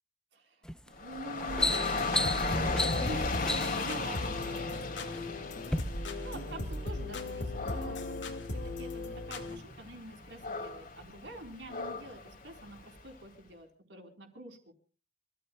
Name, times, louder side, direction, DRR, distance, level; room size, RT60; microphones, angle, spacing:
voice 1, 0.3-5.5 5.9-14.7, right 1 dB, 75° right, 3 dB, 4.3 m, -47 dB
sound 1, 0.6-0.9 1.3-3.9 4.7-5.2 5.6-5.8, left 1 dB, 5° left, 0.6 m, -33 dB
Dog / Rain, 0.9-13.1, left 3 dB, 50° left, 2.4 m, -37 dB
sound 2, 1.5-9.6, left 2 dB, 85° left, 2.2 m, -37 dB
27.5 x 14.0 x 2.3 m, 0.38 s
head